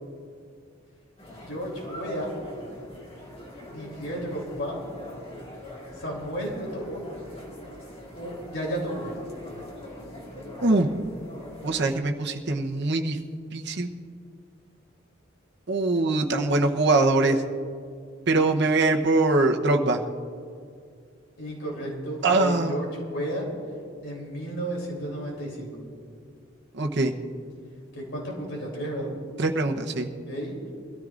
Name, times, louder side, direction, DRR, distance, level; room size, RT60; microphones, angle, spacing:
sound 1, 1.2-12.0, left 1 dB, 30° left, 2.0 m, -42 dB
voice 1, 1.5-2.3 3.7-4.8 5.9-7.0 8.1-9.2 21.4-23.5 24.0-25.7 27.9-29.1 30.3-30.5, equal, 65° left, -2 dB, 3.5 m, -33 dB
voice 2, 11.6-13.2 13.5-13.9 15.7-17.4 18.3-20.0 22.2-22.8 26.8-27.1 29.4-30.1, right 2 dB, 55° right, 3 dB, 1.0 m, -22 dB
23.0 x 14.0 x 2.6 m, 2.2 s
head